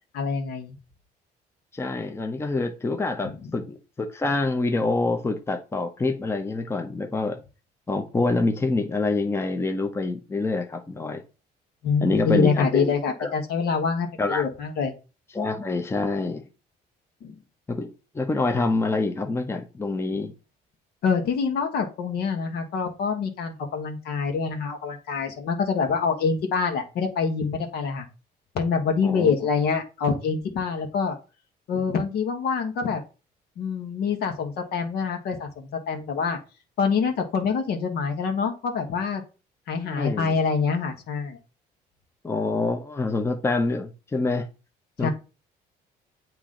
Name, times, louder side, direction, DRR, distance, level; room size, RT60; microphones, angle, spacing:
voice 1, 0.1-0.8 3.2-3.3 11.8-14.9 17.2-17.3 21.0-28.1 28.5-31.2 31.7-33.0 33.6-36.4 36.8-39.2 39.7-41.4 45.0-45.1, left 5 dB, 70° left, 1.4 m, -25 dB
voice 2, 1.7-7.4 7.9-11.2 12.0-12.9 13.2-13.3 14.2-14.4 15.3-16.4 17.7-20.3 29.0-29.3 39.8-40.4 42.2-44.5 45.0-45.1, left 3 dB, 15° left, 0.8 m, -26 dB
8.2 x 3.0 x 3.8 m
cardioid pair, 110°, 17 cm